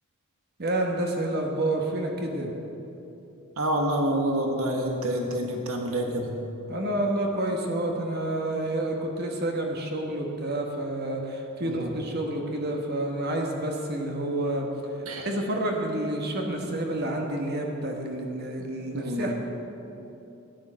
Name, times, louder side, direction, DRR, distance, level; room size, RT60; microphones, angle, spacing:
voice 1, 0.6-2.5 6.7-14.7 15.2-19.3, right 1 dB, 45° right, 1 dB, 1.3 m, -29 dB
voice 2, 3.6-6.3 11.6-11.9 15.1-15.3 18.9-19.3, right 1 dB, 80° right, 2 dB, 1.3 m, -27 dB
13.5 x 10.0 x 6.3 m, 2.9 s
head